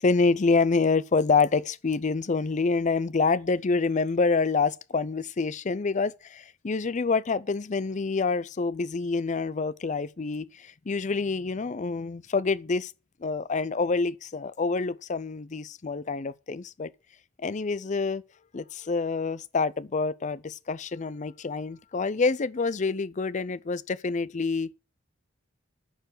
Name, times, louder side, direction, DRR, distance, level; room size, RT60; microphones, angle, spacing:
voice 1, 0.0-12.9 13.2-16.9 17.4-18.2 18.5-24.7, left 4 dB, 35° left, 0.5 m, -27 dB
10.0 x 4.6 x 7.8 m
head